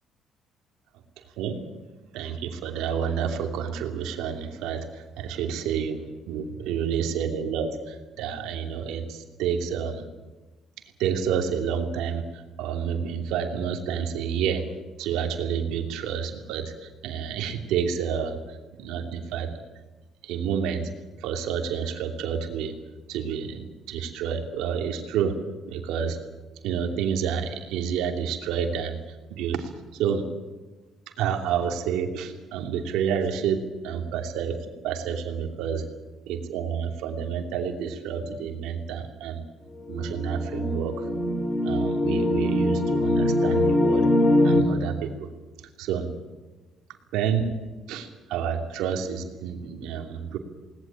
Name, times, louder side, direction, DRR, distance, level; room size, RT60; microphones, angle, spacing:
voice 1, 2.1-6.0 6.3-10.0 11.0-14.6 15.0-19.5 20.2-20.9 21.2-22.7 23.1-25.4 25.7-26.2 26.6-29.0 29.3-30.2 31.2-34.6 34.8-35.8 36.3-39.4 39.9-41.1 41.6-44.1 44.4-45.3 45.8-46.1 47.1-47.5 47.9-50.4, right 7 dB, 85° right, 4 dB, 2.8 m, -29 dB
sound 1, 39.9-44.6, left 1 dB, 30° left, 3.5 m, -23 dB
20.5 x 19.0 x 8.9 m, 1.2 s
cardioid pair, 85°, 0 cm